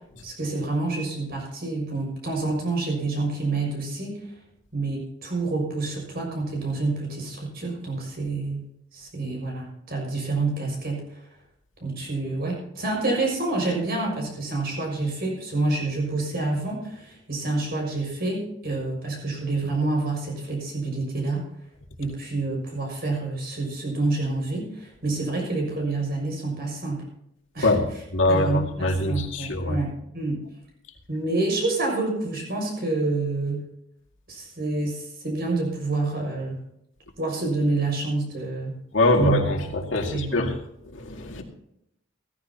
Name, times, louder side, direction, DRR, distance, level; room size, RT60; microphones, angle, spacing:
voice 1, 0.2-4.2 4.7-8.6 8.9-11.2 11.8-21.5 22.0-27.0 27.5-27.7 28.3-30.4 31.1-33.7 34.3-36.5 37.2-38.8 39.1-39.4 40.1-40.5, right 2 dB, 55° right, -1 dB, 6.4 m, -28 dB
voice 2, 28.1-29.8 38.9-40.5 40.9-41.4, left 2 dB, 80° left, 2 dB, 2.3 m, -23 dB
16.5 x 14.5 x 2.9 m, 0.79 s
head